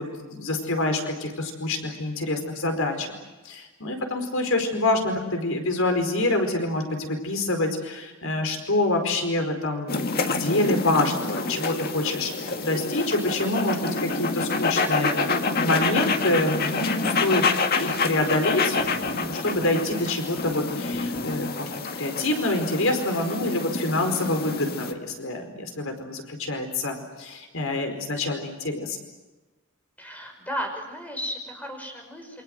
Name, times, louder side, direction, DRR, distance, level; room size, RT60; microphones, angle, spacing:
voice 1, 0.0-3.1 3.4-15.1 15.6-18.8 19.1-29.0, left 2 dB, 70° left, 5 dB, 4.8 m, -26 dB
sound 1, 9.9-24.9, left 3 dB, 45° left, 1.9 m, -27 dB
voice 2, 30.0-32.4, equal, 5° left, 3 dB, 5.4 m, -34 dB
28.0 x 25.5 x 7.9 m, 1.2 s
head